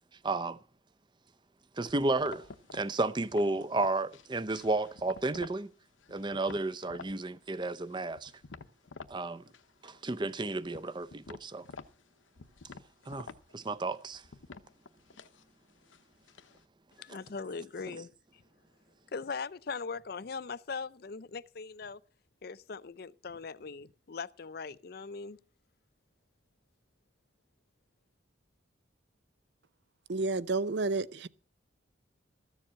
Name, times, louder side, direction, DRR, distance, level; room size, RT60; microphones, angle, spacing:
voice 1, 0.2-0.6 1.8-2.4 2.7-5.7 6.1-8.3 9.1-9.4 9.8-11.6 13.1-13.3 13.5-14.2 17.1-17.2, right 2 dB, 25° right, 0.6 m, -32 dB
sound 1, 1.9-5.7 6.0-7.2 7.5-9.2 9.5-10.1 10.4-16.6, left 4 dB, 85° left, 0.8 m, -50 dB
voice 2, 17.0-18.4 19.1-22.0 22.4-25.4, left 5 dB, 55° left, 0.5 m, -40 dB
voice 3, 30.1-31.3, right 3 dB, 65° right, 0.6 m, -30 dB
14.5 x 7.2 x 7.5 m
head